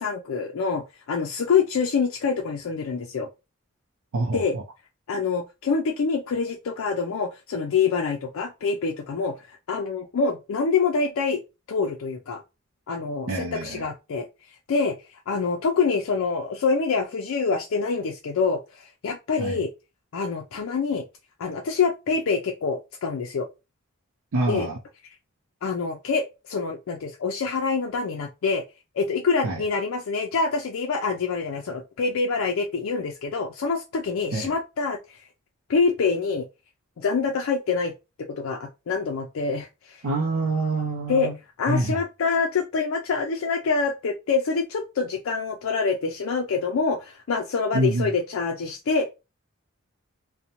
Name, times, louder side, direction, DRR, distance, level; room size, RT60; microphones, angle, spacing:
voice 1, 0.0-3.3 4.3-4.6 5.1-11.4 11.7-12.4 12.9-14.3 14.7-19.7 20.1-21.0 21.4-23.5 24.5-24.7 25.6-28.6 28.9-35.3 35.7-36.5 37.0-37.9 38.3-40.0 41.1-41.3 41.6-49.1, left 5 dB, 70° left, 0.4 m, -26 dB
voice 2, 4.1-4.6 13.3-13.9 19.4-19.6 24.3-24.8 29.4-29.6 34.3-34.5 40.0-41.4 41.7-42.0 47.7-48.1, right 2 dB, 80° right, 0.5 m, -26 dB
2.6 x 2.1 x 2.8 m
head